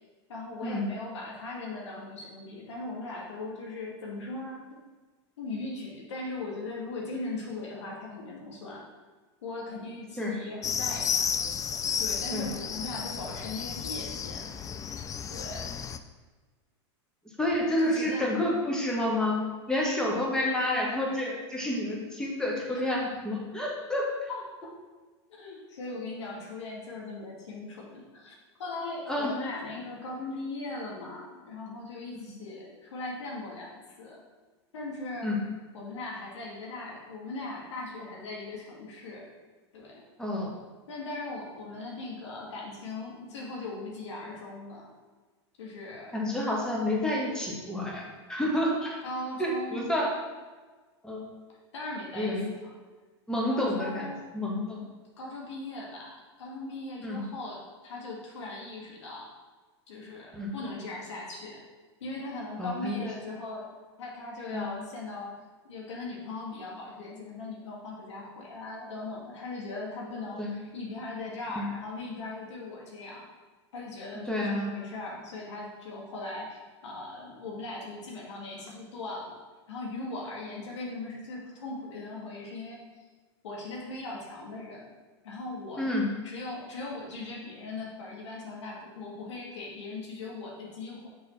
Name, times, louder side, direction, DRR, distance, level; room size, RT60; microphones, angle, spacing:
voice 1, 0.3-4.8 5.4-8.9 9.4-11.3 12.0-14.4 14.8-14.9 15.3-15.7 17.8-18.3 22.7-22.9 24.3-24.7 25.3-34.2 34.7-35.3 35.7-39.3 39.7-40.0 40.9-44.9 45.6-46.2 49.0-50.0 51.7-52.7 53.5-54.2 54.8-54.9 55.2-59.3 59.9-61.6 62.0-63.7 64.0-65.3 65.6-73.3 73.7-79.3 79.7-82.8 83.4-84.9 85.2-85.9 86.2-91.1, left 2 dB, 80° left, -3 dB, 1.8 m, -39 dB
sound 1, 10.6-16.0, left 7 dB, 20° left, 0.4 m, -32 dB
voice 2, 17.4-19.4 19.7-24.3 29.1-29.4 32.1-32.2 35.2-35.4 40.2-40.5 46.1-48.9 49.4-50.1 51.0-51.2 52.1-52.5 53.3-54.8 57.0-57.2 60.3-60.5 62.6-63.1 64.5-64.6 70.4-70.5 71.5-71.7 74.3-74.7 85.8-86.1, left 1 dB, 5° left, -2 dB, 1.7 m, -29 dB
6.2 x 4.0 x 5.6 m, 1.3 s
hypercardioid pair, 100°, 15 cm